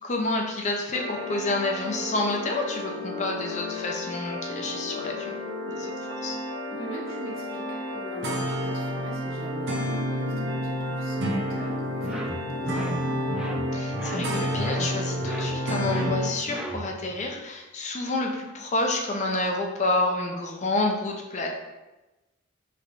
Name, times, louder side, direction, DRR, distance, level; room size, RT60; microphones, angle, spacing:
voice 1, 0.0-5.4 5.7-6.4 13.7-21.5, left 2 dB, 35° left, 1 dB, 0.6 m, -29 dB
sound 1, 0.9-16.3, equal, 60° right, 0.7 m, -30 dB
voice 2, 6.7-13.4, right 1 dB, 90° left, -4 dB, 1.1 m, -43 dB
sound 2, 12.0-17.1, equal, 5° right, 0.3 m, -36 dB
5.5 x 3.2 x 2.6 m, 1.1 s
head